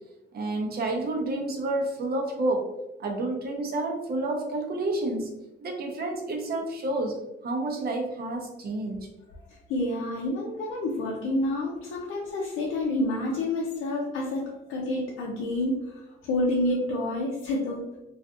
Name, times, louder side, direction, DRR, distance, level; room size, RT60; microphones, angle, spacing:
voice 1, 0.3-2.7 3.0-5.3 5.6-9.1, right 2 dB, 50° right, 1 dB, 0.6 m, -29 dB
voice 2, 9.5-18.0, left 1 dB, 85° left, -3 dB, 0.5 m, -29 dB
2.5 x 2.4 x 2.4 m, 0.96 s
cardioid pair, 90°, 20 cm